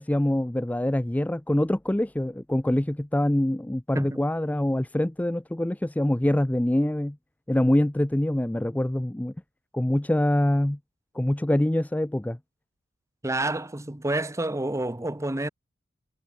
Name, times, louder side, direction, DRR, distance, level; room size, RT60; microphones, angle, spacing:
voice 1, 0.0-7.2 7.5-9.3 9.7-10.8 11.1-12.4, left 1 dB, 5° left, 0.4 m, -24 dB
voice 2, 13.2-15.5, right 2 dB, 15° right, 0.9 m, -29 dB
head